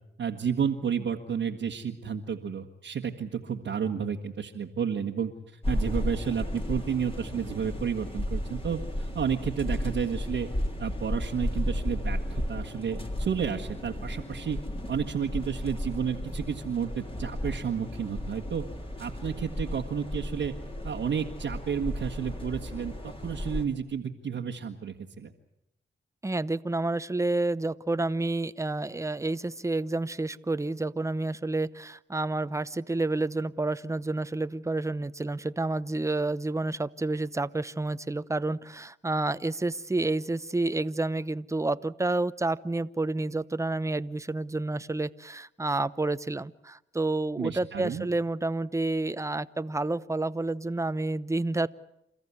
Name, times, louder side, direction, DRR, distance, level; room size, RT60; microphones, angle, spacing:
voice 1, 0.2-10.5 10.8-14.6 14.9-18.6 19.0-20.5 20.8-25.3 47.4-48.0, right 7 dB, 75° right, -1 dB, 1.6 m, -31 dB
sound 1, 5.6-23.7, left 1 dB, 30° left, 3.3 m, -34 dB
voice 2, 26.2-51.7, right 2 dB, 15° right, 15 dB, 0.8 m, -29 dB
28.5 x 14.0 x 9.7 m, 0.84 s
cardioid pair, 60°, 19 cm